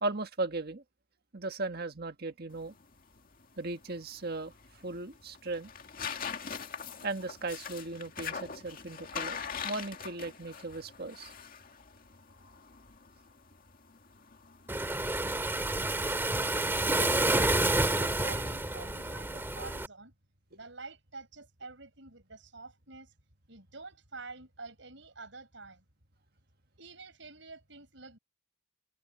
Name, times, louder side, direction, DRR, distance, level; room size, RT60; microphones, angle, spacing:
voice 1, 0.0-0.8 1.3-2.7 3.6-4.5 4.8-5.7 7.0-11.3, right 2 dB, 55° right, 1.7 m, -37 dB
sound 1, 2.5-14.7, left 7 dB, 50° left, 2.1 m, -43 dB
Waves surf, 14.7-19.9, right 2 dB, 10° right, 2.0 m, -29 dB
voice 2, 16.9-20.1 20.5-23.1 23.5-25.8 26.8-28.2, right 3 dB, 70° right, 7.9 m, -47 dB
head